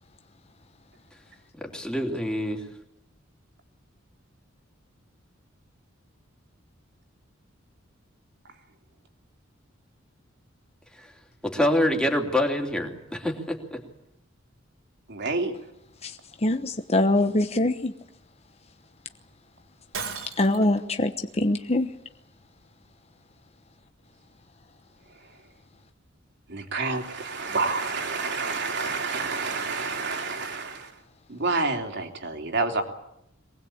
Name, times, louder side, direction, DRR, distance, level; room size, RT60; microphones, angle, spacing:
voice 1, 1.5-2.6 11.0-11.1 11.4-13.8, left 1 dB, 5° left, 2 dB, 3.0 m, -26 dB
voice 2, 15.1-15.5 26.5-30.9 31.3-32.8, right 3 dB, 60° right, 4 dB, 3.2 m, -28 dB
voice 3, 16.4-17.9 20.4-21.1 21.4-21.9, left 2 dB, 30° left, 7 dB, 1.0 m, -23 dB
Shatter, 19.9-20.8, right 5 dB, 85° right, 4.1 m, -35 dB
23.5 x 19.5 x 8.7 m, 0.80 s
head